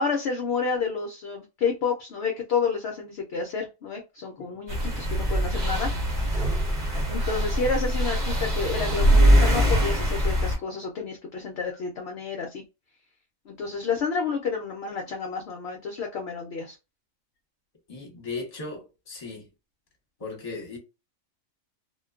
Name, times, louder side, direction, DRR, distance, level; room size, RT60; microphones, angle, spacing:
voice 1, 0.0-5.9 7.1-12.6 13.5-16.8, left 5 dB, 65° left, 0.7 m, -30 dB
sound 1, 4.7-10.6, equal, 45° right, 0.8 m, -22 dB
voice 2, 17.9-19.5 20.2-20.8, left 3 dB, 30° left, 0.9 m, -37 dB
2.4 x 2.2 x 2.3 m
omnidirectional pair, 1.4 m